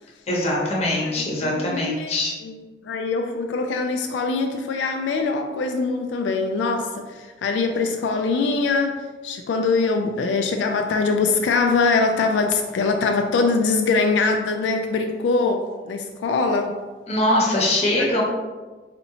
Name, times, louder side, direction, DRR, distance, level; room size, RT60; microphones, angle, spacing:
voice 1, 0.3-2.3 17.1-18.2, left 1 dB, 35° left, -3 dB, 0.8 m, -22 dB
voice 2, 1.0-2.1 2.4-2.6 2.8-16.8 18.0-18.1, left 4 dB, 90° left, 4 dB, 0.3 m, -23 dB
4.2 x 2.7 x 2.7 m, 1.3 s
head